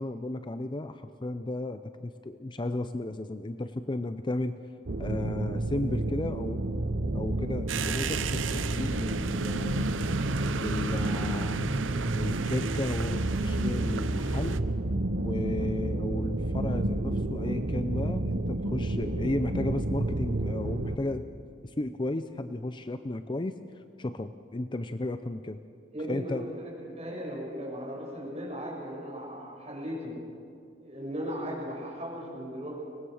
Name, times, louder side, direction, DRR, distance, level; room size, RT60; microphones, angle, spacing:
voice 1, 0.0-4.6 5.0-6.6 7.1-9.9 10.6-11.7 12.1-14.6 15.2-21.3 21.6-25.6 26.1-26.4, left 2 dB, 25° left, 10 dB, 0.5 m, -34 dB
sound 1, 4.9-21.0, right 1 dB, 50° right, 0.8 m, -30 dB
sound 2, 7.7-14.6, right 4 dB, 85° right, 0.7 m, -34 dB
voice 2, 25.9-30.2 30.8-32.8, equal, 35° right, -3 dB, 7.0 m, -37 dB
23.5 x 19.5 x 6.5 m, 2.4 s
head